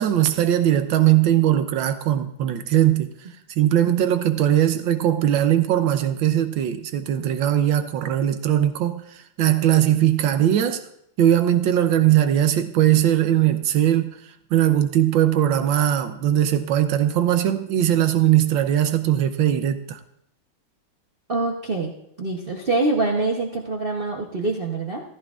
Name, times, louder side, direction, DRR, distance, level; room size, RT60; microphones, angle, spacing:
voice 1, 0.0-3.1 3.6-10.9 11.2-14.1 14.5-20.0, right 11 dB, 70° right, 1.3 m, -20 dB
voice 2, 21.3-21.9 22.2-25.0, right 2 dB, 50° right, 0.6 m, -25 dB
14.0 x 14.0 x 2.4 m
omnidirectional pair, 2.4 m